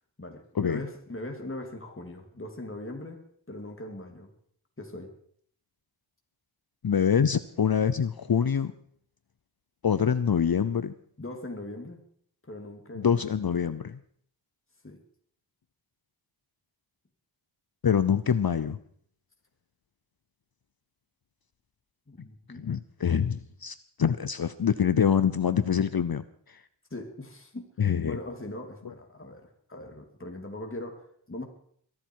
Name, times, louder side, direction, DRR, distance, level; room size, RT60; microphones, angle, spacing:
voice 1, 0.2-4.3 4.8-5.1 11.2-12.0 12.5-13.2 14.8-15.0 22.1-22.7 26.9-27.7 28.0-31.4, left 1 dB, 25° left, 3 dB, 2.8 m, -40 dB
voice 2, 6.8-8.7 9.8-10.9 13.0-14.0 17.8-18.8 22.5-26.6 27.8-28.2 28.8-28.9, left 7 dB, 50° left, 14 dB, 0.7 m, -25 dB
22.5 x 11.5 x 4.7 m, 0.62 s
wide cardioid pair, 70°, 48 cm